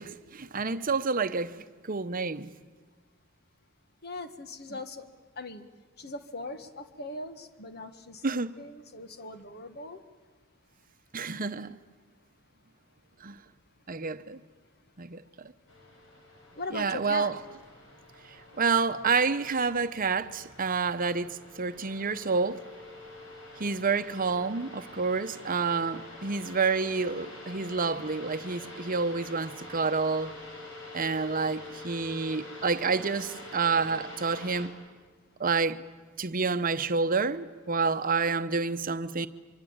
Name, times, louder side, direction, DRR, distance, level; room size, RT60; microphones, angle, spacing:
voice 1, 0.0-1.5 1.9-2.5 8.2-8.5 11.1-11.8 13.2-13.4 13.9-14.4 15.0-15.2 16.7-17.4 18.6-22.6 23.6-30.3 30.9-34.7 35.4-35.8 36.2-39.3, right 4 dB, 45° right, 0.9 m, -28 dB
voice 2, 4.0-5.1 5.4-5.6 6.0-10.0 16.5-17.3, left 2 dB, 50° left, 1.6 m, -40 dB
sound 1, 15.7-34.7, left 2 dB, 70° left, 6.0 m, -46 dB
24.5 x 24.0 x 8.8 m
head